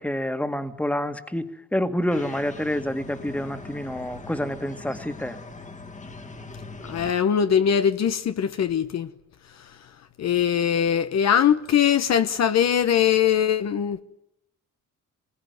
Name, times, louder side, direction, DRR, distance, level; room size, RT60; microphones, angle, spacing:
voice 1, 0.0-5.4, left 1 dB, 5° left, 2.0 m, -28 dB
sound 1, 2.1-7.1, left 3 dB, 25° left, 1.9 m, -41 dB
voice 2, 6.9-9.1 10.2-14.0, left 9 dB, 60° left, 1.2 m, -21 dB
26.5 x 21.0 x 9.6 m
cardioid pair, 90°, 30 cm